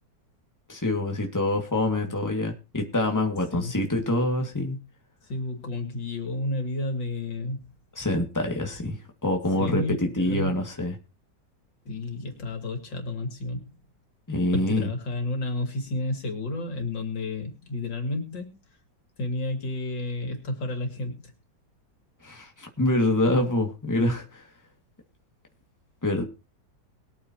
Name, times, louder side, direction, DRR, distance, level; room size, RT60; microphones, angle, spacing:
voice 1, 0.7-4.8 8.0-9.0 9.2-9.8 10.2-11.0 14.3-14.9 22.2-24.4 26.0-26.2, left 1 dB, 10° left, 2 dB, 2.2 m, -25 dB
voice 2, 5.2-7.7 9.6-10.5 11.8-13.7 14.5-18.5 19.2-21.3, left 2 dB, 85° left, 5 dB, 3.4 m, -31 dB
21.5 x 8.6 x 3.0 m, 0.31 s
omnidirectional pair, 2.0 m